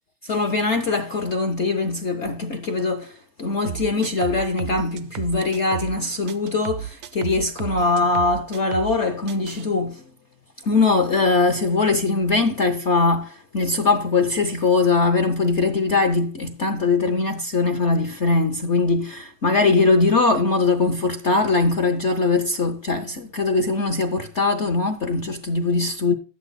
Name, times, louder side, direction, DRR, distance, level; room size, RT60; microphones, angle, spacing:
voice 1, 0.2-10.0 10.6-26.1, left 3 dB, 60° left, 0.7 m, -21 dB
sound 1, 3.7-6.0 6.3-9.0 9.3-9.7, right 11 dB, 80° right, 1.4 m, -33 dB
12.0 x 9.1 x 4.0 m
omnidirectional pair, 2.2 m